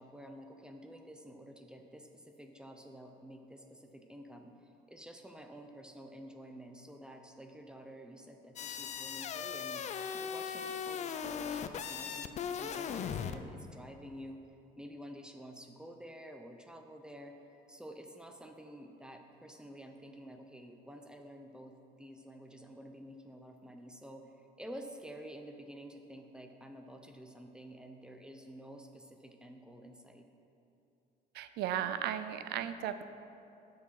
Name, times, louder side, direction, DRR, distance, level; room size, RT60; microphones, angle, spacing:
voice 1, 0.0-9.9 10.1-14.4 14.8-17.4 17.7-30.3, equal, 5° right, 4 dB, 0.6 m, -50 dB
sound 1, 8.6-13.4, left 7 dB, 45° left, 0.4 m, -38 dB
voice 2, 31.3-33.0, right 10 dB, 75° right, 11 dB, 0.5 m, -35 dB
7.2 x 6.4 x 5.6 m, 2.7 s
cardioid pair, 110°, 17 cm